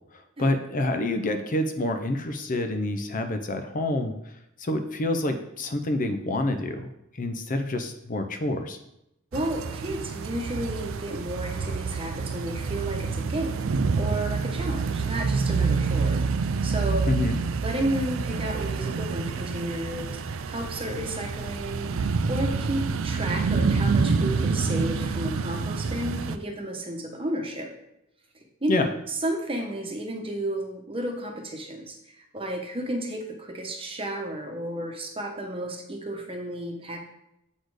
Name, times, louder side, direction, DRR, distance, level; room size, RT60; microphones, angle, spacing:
voice 1, 0.4-4.1 4.6-6.9 7.2-8.8 17.1-17.4 28.7-28.9, left 1 dB, 40° left, 7 dB, 0.6 m, -27 dB
voice 2, 9.3-13.7 14.0-16.3 16.6-17.2 17.6-27.7 28.3-37.0, right 1 dB, 25° right, 2 dB, 1.1 m, -32 dB
sound 1, 9.3-26.4, right 4 dB, 65° right, 0.4 m, -27 dB
7.9 x 4.2 x 4.8 m, 0.82 s
head